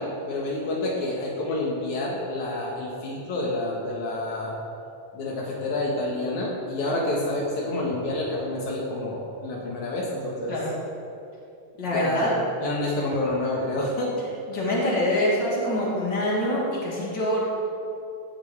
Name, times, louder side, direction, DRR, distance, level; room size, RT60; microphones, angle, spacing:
voice 1, 0.0-4.6 5.1-10.5 11.9-12.3 12.6-14.1, left 2 dB, 80° left, -3 dB, 2.9 m, -28 dB
voice 2, 11.8-12.3 14.5-17.4, left 1 dB, 35° left, -7 dB, 3.8 m, -25 dB
17.5 x 12.5 x 3.4 m, 2.6 s
omnidirectional pair, 3.3 m